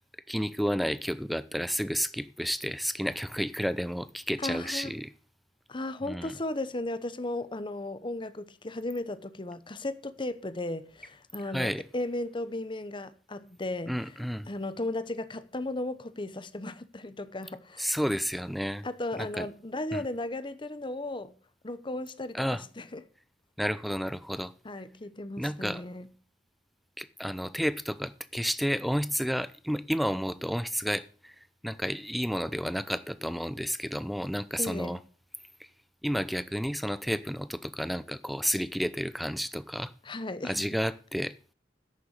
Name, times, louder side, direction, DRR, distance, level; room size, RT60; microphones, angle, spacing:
voice 1, 0.3-5.1 6.1-6.3 11.5-11.8 13.9-14.5 17.8-18.9 19.2-19.5 19.9-20.0 22.3-22.6 23.6-24.5 25.4-25.8 27.0-31.3 31.6-35.0 36.0-39.9 40.4-41.5, equal, ahead, 0.6 m, -31 dB
voice 2, 4.4-4.9 5.7-14.2 14.5-18.0 18.8-21.3 21.6-23.0 24.6-26.1 34.6-35.0 40.0-40.6, left 2 dB, 25° left, 0.9 m, -35 dB
11.0 x 6.8 x 8.2 m
head